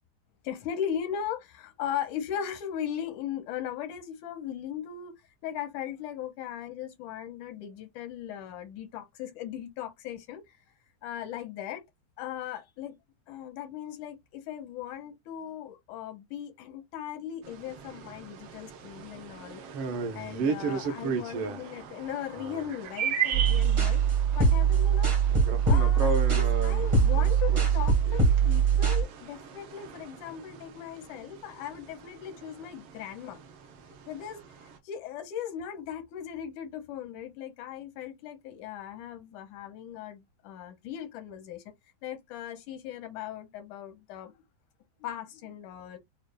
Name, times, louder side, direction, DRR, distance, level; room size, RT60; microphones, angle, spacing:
voice 1, 0.4-5.1 5.4-10.6 11.0-11.8 12.2-13.0 13.3-19.6 20.1-24.0 24.4-25.1 25.7-33.4 33.9-34.4 34.8-41.6 42.0-44.4 45.0-46.0, left 9 dB, 90° left, 2.4 m, -38 dB
sound 1, 17.4-34.8, right 3 dB, 85° right, 1.1 m, -38 dB
sound 2, 21.2-27.9, right 9 dB, 70° right, 1.5 m, -36 dB
sound 3, 23.3-29.0, right 6 dB, 50° right, 0.3 m, -23 dB
6.4 x 2.2 x 2.3 m
omnidirectional pair, 3.5 m